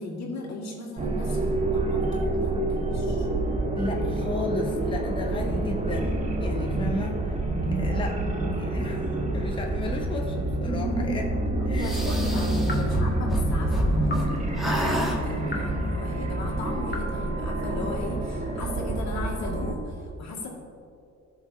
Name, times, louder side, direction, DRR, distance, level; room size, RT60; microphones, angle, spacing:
voice 1, 0.0-1.5 1.7-3.3 11.3-20.5, left 2 dB, 65° left, -3 dB, 2.0 m, -36 dB
sound 1, 1.0-19.7, right 2 dB, 25° right, 1.1 m, -27 dB
voice 2, 3.8-8.2 8.5-9.1 9.3-11.3 11.7-12.0, left 2 dB, 15° left, 1 dB, 0.7 m, -34 dB
sound 2, 11.3-11.6 12.6-13.0 14.0-14.3 15.5-15.8 16.9-17.1, left 1 dB, 35° left, 1.4 m, -36 dB
sound 3, 11.8-14.3 14.6-15.2, right 1 dB, ahead, 1.5 m, -29 dB
14.0 x 6.1 x 2.7 m, 2.4 s
cardioid pair, 90°, 30 cm